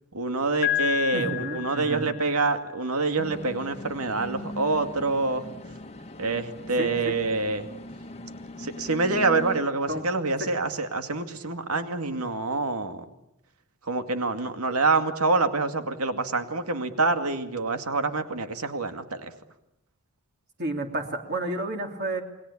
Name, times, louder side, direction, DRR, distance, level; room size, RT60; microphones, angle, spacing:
voice 1, 0.1-5.4 6.2-7.7 8.6-13.0 13.9-19.3, right 3 dB, 90° right, 8 dB, 2.3 m, -26 dB
Piano, 0.6-2.5, left 14 dB, 45° left, 0.9 m, -30 dB
voice 2, 1.1-2.1 6.8-7.2 9.9-10.0 10.4-10.5 20.6-22.2, right 1 dB, 50° right, 3 dB, 3.1 m, -31 dB
sound 1, 3.2-9.6, left 1 dB, 30° left, 1.3 m, -40 dB
29.5 x 21.5 x 8.6 m, 0.86 s
head